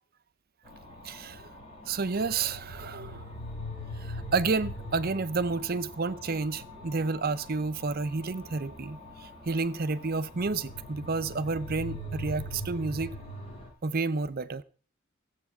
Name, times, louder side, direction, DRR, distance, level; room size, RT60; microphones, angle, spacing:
sound 1, 0.6-13.7, left 1 dB, 25° left, 7.2 m, -42 dB
voice 1, 1.0-1.5 1.9-3.2 4.0-13.1 13.8-14.6, right 4 dB, 45° right, 0.7 m, -30 dB
16.5 x 8.1 x 7.1 m
head